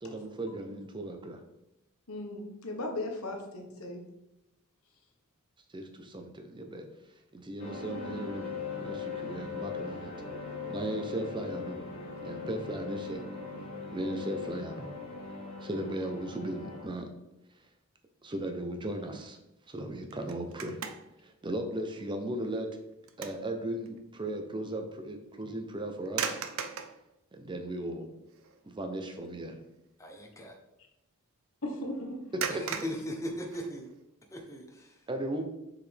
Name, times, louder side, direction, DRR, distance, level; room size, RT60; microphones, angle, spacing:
voice 1, 0.0-1.4 5.7-6.9 7.3-8.5 8.8-10.1 10.7-11.8 12.2-13.2 13.9-14.9 15.6-17.1 18.2-19.4 19.7-20.8 21.2-22.8 23.2-26.4 27.3-28.1 28.6-29.6 32.3-32.9 35.1-35.4, right 1 dB, 20° right, 5 dB, 0.6 m, -36 dB
voice 2, 2.1-4.0 31.6-32.0, left 1 dB, 80° left, 2 dB, 1.3 m, -37 dB
sound 1, 7.6-16.8, left 5 dB, 45° left, 2.5 m, -40 dB
sound 2, 20.1-21.2 21.7-21.9 22.4-23.5 23.8-24.0 26.1-27.0 27.8-27.9 28.3-28.6 28.9-29.2 32.4-34.0, right 7 dB, 65° right, 0.5 m, -37 dB
voice 3, 30.0-30.5 32.5-33.9 34.3-34.9, equal, 15° left, 2 dB, 0.9 m, -38 dB
6.7 x 5.0 x 3.4 m, 0.88 s
head